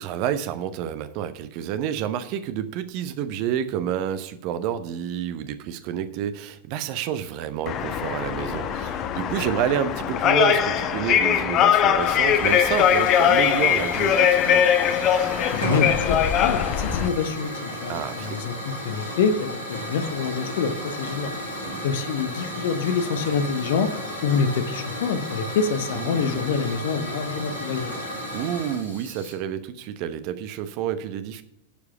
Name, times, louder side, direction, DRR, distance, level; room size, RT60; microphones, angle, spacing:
voice 1, 0.0-14.6 17.9-18.4 21.6-21.8 25.9-26.5 28.3-31.4, right 9 dB, 45° right, 11 dB, 0.9 m, -29 dB
sound 1, 7.7-17.1, left 9 dB, 35° left, 0.9 m, -21 dB
Hiss / Fire, 12.0-29.3, equal, 80° left, 3.9 m, -34 dB
voice 2, 15.5-21.4 21.8-23.9 24.2-28.0, left 5 dB, 55° left, 10 dB, 1.0 m, -26 dB
11.5 x 4.9 x 6.9 m, 0.87 s
figure-of-eight pair, 90°, 0 cm